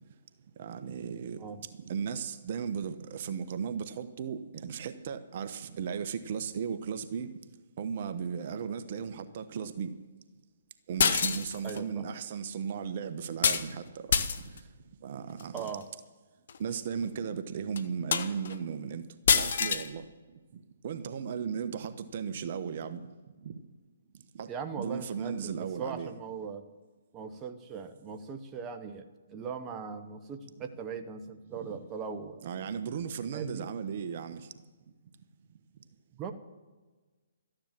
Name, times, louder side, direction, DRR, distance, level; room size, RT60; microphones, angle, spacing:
voice 1, 0.6-1.4 1.9-7.3 7.8-9.9 10.9-13.8 15.0-15.6 16.6-19.0 19.3-20.0 20.8-23.0 23.4-23.5 24.3-24.5 24.8-26.1 32.4-34.4, right 7 dB, 50° right, 1.0 m, -36 dB
sound 1, 11.0-11.8 13.4-13.7 14.1-14.6 15.4-15.7 16.5-16.6 17.0-17.1 17.8-17.9 18.1-18.5 19.3-19.9, left 6 dB, 60° left, 1.1 m, -26 dB
voice 2, 11.6-12.1 15.5-15.8 24.5-26.6 27.1-32.5 33.3-33.7 36.2-36.3, right 6 dB, 20° right, 1.0 m, -39 dB
13.5 x 10.0 x 7.4 m
hypercardioid pair, 140°, 0 cm